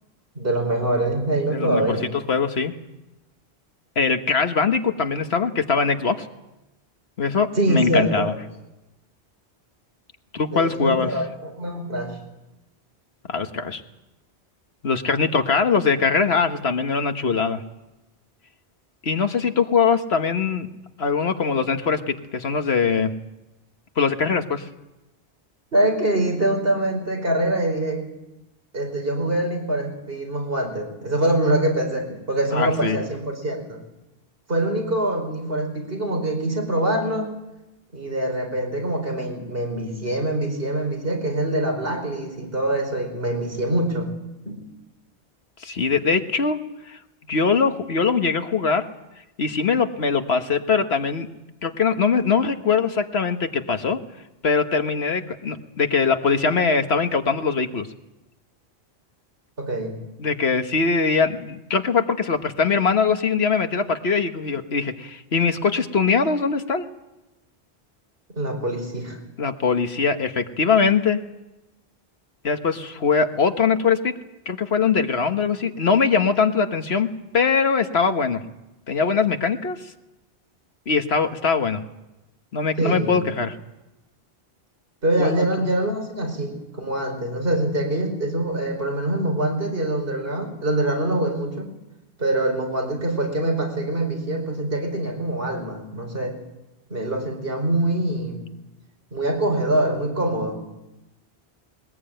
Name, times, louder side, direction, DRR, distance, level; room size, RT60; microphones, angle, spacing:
voice 1, 0.3-2.1 7.6-8.3 10.5-12.2 25.7-28.0 28.7-33.8 34.5-37.3 37.9-44.1 44.4-44.6 59.6-60.0 68.3-69.2 82.8-83.2 85.0-91.7 92.2-96.4 96.9-98.4 99.1-100.6, right 1 dB, 65° right, 2 dB, 5.1 m, -24 dB
voice 2, 1.5-2.0 2.3-2.7 3.9-6.3 7.2-8.3 10.3-11.1 13.3-13.8 14.8-17.6 19.0-20.7 21.0-23.1 24.0-24.6 32.5-33.0 45.6-46.6 46.9-47.0 47.3-48.8 49.4-51.3 51.6-54.0 54.4-57.9 60.2-66.9 69.4-71.2 72.4-74.1 74.4-77.1 77.3-78.4 78.9-79.8 80.9-81.8 82.5-83.5 85.2-85.7, left 5 dB, 75° left, 7 dB, 1.6 m, -22 dB
21.5 x 20.5 x 9.0 m, 0.98 s
omnidirectional pair, 1.1 m